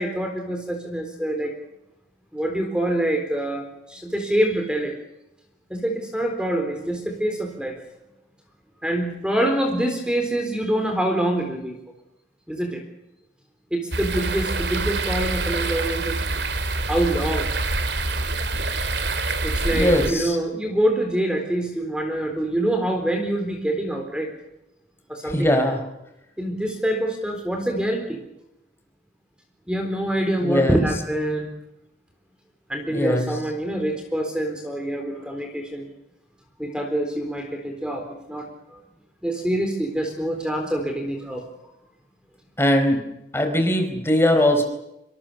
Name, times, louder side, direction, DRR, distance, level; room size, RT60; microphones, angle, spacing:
voice 1, 0.0-1.5 2.3-4.9 5.7-7.8 8.8-11.8 12.5-12.8 13.7-16.2 16.9-17.5 19.4-24.3 25.1-25.8 26.4-28.2 29.7-31.5 32.7-35.9 36.6-38.8 39.2-41.4, right 1 dB, 5° right, 4 dB, 3.9 m, -25 dB
sound 1, 13.9-20.1, right 2 dB, 65° right, 2.7 m, -26 dB
voice 2, 19.7-20.4 25.3-25.8 30.4-30.8 32.9-33.3 42.6-43.0 43.3-44.6, left 1 dB, 15° left, 5 dB, 4.5 m, -20 dB
26.5 x 25.5 x 6.9 m, 0.89 s
head